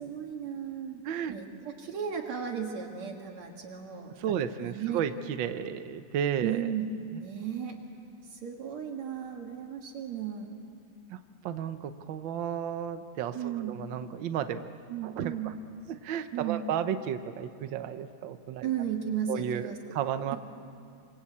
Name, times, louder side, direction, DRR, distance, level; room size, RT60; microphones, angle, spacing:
voice 1, 0.0-1.0 1.3-5.0 6.4-6.9 7.2-7.8 8.3-10.5 13.3-13.7 14.9-15.5 16.3-16.6 18.6-19.9, right 8 dB, 65° right, 1 dB, 2.9 m, -35 dB
voice 2, 4.2-6.7 7.1-7.2 11.1-11.2 11.4-14.7 15.0-15.5 15.9-18.7 19.3-20.4, right 9 dB, 90° right, 9 dB, 1.0 m, -33 dB
26.5 x 25.0 x 8.5 m, 2.4 s
omnidirectional pair, 3.4 m